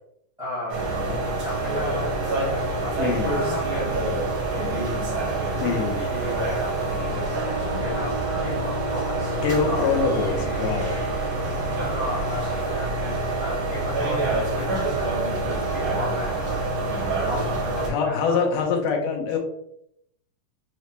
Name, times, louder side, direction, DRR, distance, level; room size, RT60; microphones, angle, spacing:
voice 1, 0.4-1.1 1.4-2.9 3.2-4.2 4.5-5.2 5.5-6.7 7.1-9.9 11.8-15.2 15.7-18.4, equal, 25° right, -7 dB, 0.6 m, -35 dB
sound 1, 0.7-17.9, right 2 dB, 65° right, 1.0 m, -26 dB
voice 2, 3.0-3.4 5.6-6.0 9.4-10.9 17.9-19.4, left 5 dB, 85° left, 1 dB, 2.4 m, -24 dB
sound 2, 5.3-8.3 9.2-12.4, left 3 dB, 65° left, 1.7 m, -44 dB
sound 3, 7.2-10.2, right 2 dB, 85° right, 2.6 m, -38 dB
6.2 x 2.2 x 2.9 m, 0.73 s
omnidirectional pair, 3.7 m